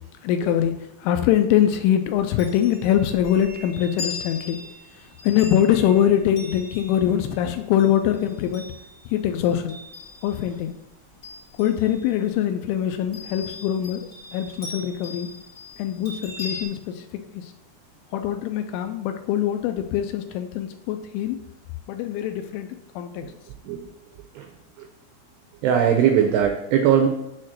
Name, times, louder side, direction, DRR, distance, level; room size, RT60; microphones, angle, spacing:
voice 1, 0.2-4.6 4.9-8.7 9.1-9.8 10.2-10.7 11.6-15.3 15.8-17.5 18.1-21.4 21.9-23.3, left 10 dB, 85° left, 7 dB, 2.8 m, -23 dB
Chime, 2.4-10.6 11.0-12.3 13.1-16.6, left 3 dB, 55° left, 0.9 m, -40 dB
voice 2, 25.6-27.1, right 8 dB, 85° right, 4 dB, 2.4 m, -19 dB
7.4 x 4.3 x 6.4 m, 0.89 s
omnidirectional pair, 5.7 m